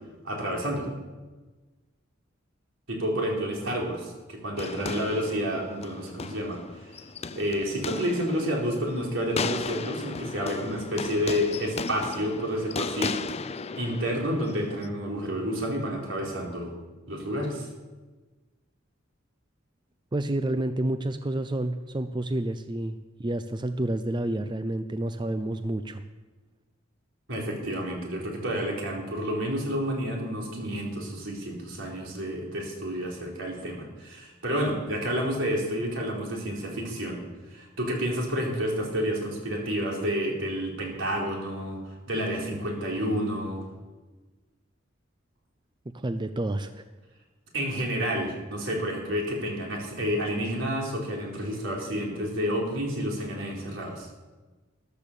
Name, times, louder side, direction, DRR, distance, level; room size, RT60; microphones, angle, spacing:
voice 1, 0.2-0.9 2.9-7.0 7.3-13.2 13.8-16.7 17.1-17.7 27.3-37.2 37.5-43.7 47.5-54.1, equal, 80° right, -1 dB, 4.1 m, -30 dB
sound 1, 4.6-14.9, left 4 dB, 30° left, 0.5 m, -36 dB
voice 2, 20.1-26.0 45.9-46.8, right 1 dB, 25° right, 10 dB, 0.5 m, -29 dB
13.5 x 12.0 x 6.9 m, 1.3 s
head